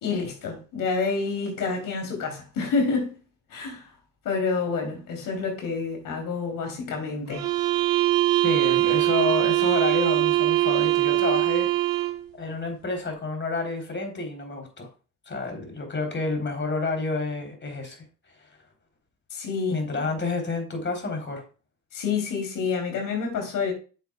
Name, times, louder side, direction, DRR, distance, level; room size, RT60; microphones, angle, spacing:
voice 1, 0.0-3.1 3.5-3.9 4.2-7.5 19.3-19.8 21.9-23.7, left 4 dB, 70° left, 3.2 m, -28 dB
sound 1, 7.3-12.3, right 16 dB, 85° right, 0.9 m, -22 dB
voice 2, 8.4-11.9 12.4-14.9 15.3-18.0 18.4-18.5 19.7-21.4, left 3 dB, 35° left, 3.5 m, -29 dB
9.0 x 7.2 x 2.3 m
supercardioid pair, 70°, 33 cm